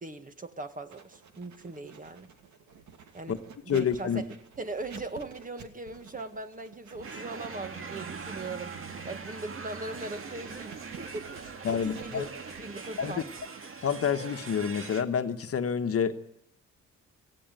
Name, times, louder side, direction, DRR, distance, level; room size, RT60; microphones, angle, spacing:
voice 1, 0.0-2.3 3.1-3.4 3.6-4.3 4.6-8.8 9.0-12.3 12.6-13.3, right 2 dB, 25° right, 9 dB, 1.7 m, -39 dB
Writing, 0.9-15.6, right 6 dB, 70° right, 2.5 m, -51 dB
voice 2, 3.7-4.2 11.6-12.2 13.0-13.2 13.8-16.2, left 7 dB, 50° left, 8 dB, 1.3 m, -28 dB
sound 1, 7.0-15.0, right 4 dB, 45° right, 2.0 m, -42 dB
18.5 x 16.0 x 9.2 m, 0.78 s
cardioid pair, 90°, 30 cm